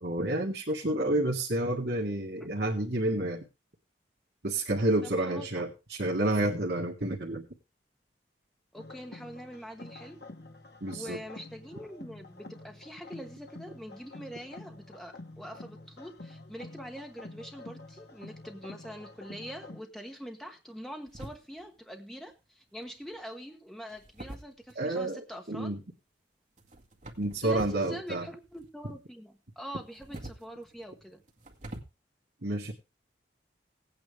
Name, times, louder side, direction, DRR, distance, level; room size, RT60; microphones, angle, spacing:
voice 1, 0.0-3.5 4.4-7.5 10.8-11.2 24.8-25.2 25.5-25.8 27.2-28.3 32.4-32.7, right 1 dB, 60° right, -2 dB, 1.8 m, -29 dB
voice 2, 5.0-5.6 8.7-10.2 10.9-25.8 27.4-31.2, equal, ahead, 4 dB, 1.1 m, -44 dB
sound 1, 8.8-19.8, left 2 dB, 60° left, 1.3 m, -48 dB
sound 2, 21.1-21.8 22.8-23.2 23.9-25.0 26.6-27.9 28.1-29.0 29.8-31.8, right 1 dB, 40° right, 1.9 m, -46 dB
17.5 x 9.0 x 3.5 m, 0.28 s
head